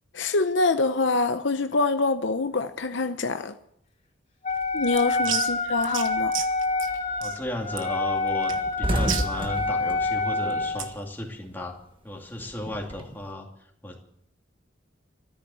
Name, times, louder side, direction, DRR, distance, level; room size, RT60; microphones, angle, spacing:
voice 1, 0.1-3.5 4.7-6.3, left 3 dB, 65° left, 0.8 m, -25 dB
Wind instrument woodwind instrument, 4.4-10.9, left 3 dB, 35° left, 4.1 m, -27 dB
sound 1, 4.5-11.0, right 9 dB, 80° right, 1.4 m, -35 dB
sound 2, 6.7-7.0 7.4-7.6 7.8-8.0 8.3-11.3 11.6-13.2, equal, 25° right, 1.5 m, -31 dB
voice 2, 7.2-8.5 8.8-11.8 12.0-13.5 13.8-14.0, left 1 dB, 10° left, 2.5 m, -34 dB
14.0 x 9.9 x 9.3 m
head